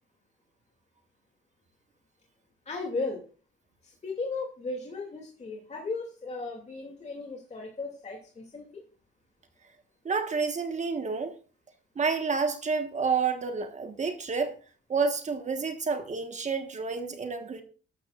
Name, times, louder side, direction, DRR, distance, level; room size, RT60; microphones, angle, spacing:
voice 1, 2.7-3.2 3.8-8.8, left 3 dB, 35° left, 2.7 m, -36 dB
voice 2, 10.0-11.3 11.9-14.6 14.9-17.6, right 5 dB, 35° right, 1.4 m, -29 dB
13.0 x 12.0 x 2.5 m
cardioid pair, 90°, 20 cm